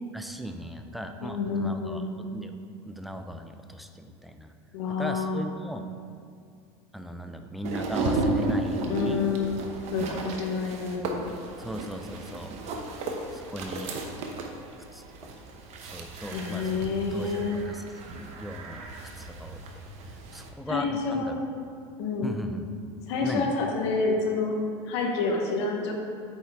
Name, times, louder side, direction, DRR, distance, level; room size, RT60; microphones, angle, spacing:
voice 1, 0.1-2.5 2.9-4.5 5.0-5.9 6.9-9.2 10.0-10.2 11.6-12.5 12.8-14.2 14.9-15.0 15.9-18.9 19.2-19.6 20.3-21.4 22.2-22.7 23.2-23.5, equal, ahead, 6 dB, 0.5 m, -38 dB
voice 2, 1.2-2.1 4.7-5.4 8.9-11.2 16.3-17.6 20.7-21.3 22.0-22.3 23.1-24.6 24.8-25.9, left 4 dB, 75° left, 1 dB, 1.2 m, -28 dB
sound 1, 7.6-20.5, right 2 dB, 50° right, 0.9 m, -34 dB
8.4 x 4.4 x 3.6 m, 2.3 s
supercardioid pair, 100°, 14 cm